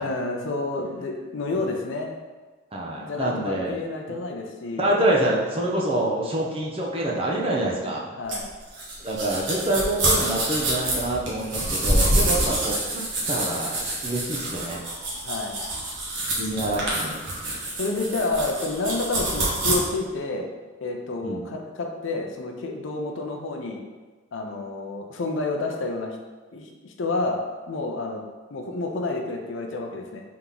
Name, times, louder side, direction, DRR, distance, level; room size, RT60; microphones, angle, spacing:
voice 1, 0.0-2.1 3.0-5.0 8.2-8.5 15.2-15.6 16.5-16.9 17.8-20.5 20.8-23.8 24.3-26.2 26.5-27.4 27.7-28.2 28.5-30.2, left 2 dB, 65° left, 2 dB, 0.5 m, -29 dB
voice 2, 2.7-3.8 4.1-4.2 4.8-8.1 9.0-13.0 13.3-14.8 16.4-17.3 21.2-21.4, right 1 dB, 30° right, -3 dB, 0.6 m, -26 dB
sound 1, 8.3-19.7, right 1 dB, 65° right, 1.0 m, -26 dB
3.5 x 2.9 x 3.8 m, 1.3 s
head